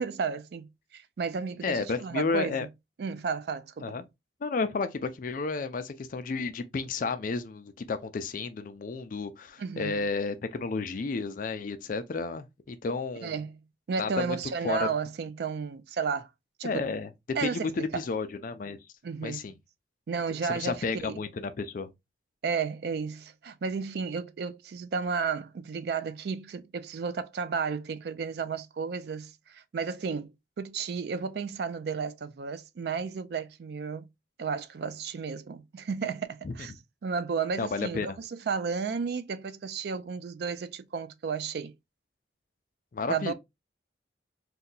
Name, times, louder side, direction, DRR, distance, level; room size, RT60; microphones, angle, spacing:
voice 1, 0.0-2.7 3.0-3.9 9.6-10.1 13.2-13.6 13.9-16.3 16.6-16.9 17.3-18.0 19.0-19.5 20.1-21.2 22.4-34.1 34.4-36.7 37.0-41.7 43.1-43.3, right 5 dB, 55° right, 0.3 m, -33 dB
voice 2, 1.6-2.7 3.8-4.0 4.4-13.3 14.0-14.2 14.6-14.9 16.6-17.1 17.4-18.8 19.2-19.5 20.5-21.9 36.4-36.5 37.6-38.2 42.9-43.3, left 4 dB, 45° left, 0.4 m, -32 dB
2.7 x 2.2 x 3.8 m
head